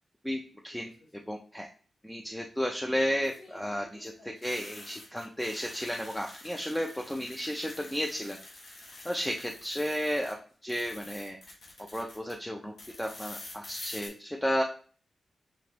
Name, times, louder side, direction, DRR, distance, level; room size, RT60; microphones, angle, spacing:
voice 1, 0.2-0.9 1.3-1.7 2.0-8.4 9.0-10.4 10.6-11.4 11.9-14.6, equal, 5° left, 1 dB, 0.4 m, -33 dB
sound 1, 0.7-1.2 3.1-10.3 10.6-12.3 12.8-14.1, left 2 dB, 60° left, 1.3 m, -47 dB
6.0 x 2.9 x 3.0 m, 0.42 s
wide cardioid pair, 175°, 0 cm